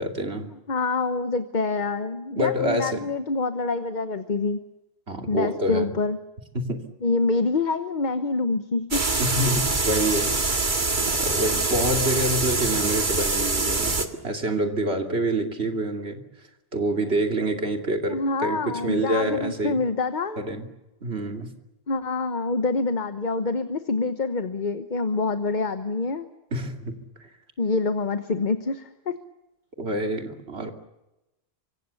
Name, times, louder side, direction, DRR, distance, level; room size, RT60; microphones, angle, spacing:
voice 1, 0.0-0.5 2.4-3.1 5.1-6.0 6.5-6.8 9.2-10.4 11.1-16.2 16.7-19.8 20.4-20.7 21.0-21.5 26.5-27.0 29.8-30.7, right 1 dB, 80° right, 4 dB, 3.0 m, -27 dB
voice 2, 0.7-4.6 5.3-6.2 7.0-9.0 18.1-20.4 21.9-26.3 27.6-29.2, left 3 dB, 45° left, 10 dB, 1.2 m, -26 dB
sound 1, 8.9-14.1, right 3 dB, 50° right, 2.0 m, -24 dB
27.5 x 25.0 x 7.0 m, 0.98 s
omnidirectional pair, 1.1 m